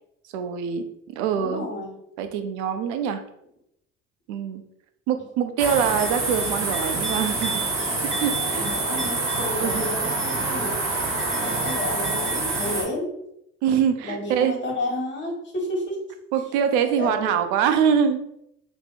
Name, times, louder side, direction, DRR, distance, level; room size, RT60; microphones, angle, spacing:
voice 1, 0.3-0.8 1.1-1.7 2.2-3.2 4.3-4.6 5.1-7.6 8.0-8.7 9.6-9.8 13.6-14.5 16.3-18.2, right 8 dB, 65° right, 8 dB, 0.5 m, -24 dB
voice 2, 1.3-2.0 7.8-8.0 8.5-10.8 11.4-13.1 14.0-16.2 17.0-17.2, left 1 dB, 30° left, 0 dB, 1.2 m, -31 dB
sound 1, 5.6-12.8, right 2 dB, 30° right, 1.1 m, -26 dB
2.8 x 2.0 x 3.9 m, 0.79 s
figure-of-eight pair, 55°, 40 cm